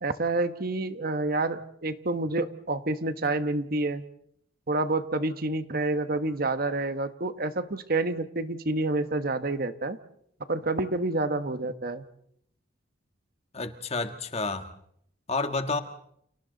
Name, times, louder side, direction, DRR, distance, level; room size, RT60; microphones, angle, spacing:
voice 1, 0.0-4.0 4.7-10.0 10.5-12.0, right 2 dB, 50° right, 10 dB, 1.3 m, -28 dB
voice 2, 13.5-14.7 15.3-15.8, left 3 dB, 35° left, 7 dB, 1.6 m, -30 dB
30.0 x 29.5 x 4.0 m, 0.71 s
head